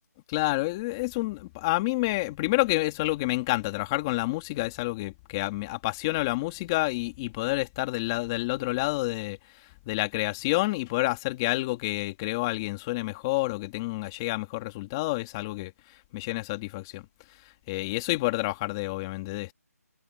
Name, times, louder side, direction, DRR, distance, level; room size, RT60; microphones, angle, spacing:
voice 1, 0.3-9.4 9.9-15.7 16.1-17.0 17.7-19.5, left 21 dB, 15° left, 2.4 m, -29 dB
figure-of-eight pair, 170°, 9 cm